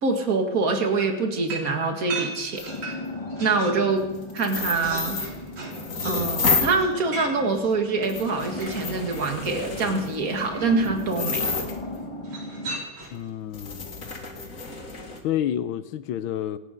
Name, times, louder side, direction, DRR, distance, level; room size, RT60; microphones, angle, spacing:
voice 1, 0.0-2.7 3.4-4.1 4.3-5.2 6.0-11.7, right 3 dB, 45° right, 4 dB, 2.4 m, -25 dB
sound 1, 1.0-3.9 4.2-9.3 10.3-10.9 12.2-13.3, right 3 dB, 75° right, 4.6 m, -38 dB
sound 2, 2.6-2.7 4.3-6.8 7.5-7.6 8.0-12.0 13.0-13.1 13.5-15.2, left 4 dB, 45° left, 2.5 m, -30 dB
sound 3, 2.7-12.8, left 2 dB, 20° left, 1.1 m, -37 dB
voice 2, 13.1-13.9 15.2-16.6, left 11 dB, 90° left, 12 dB, 1.5 m, -29 dB
28.0 x 9.9 x 5.2 m, 1.1 s
omnidirectional pair, 2.1 m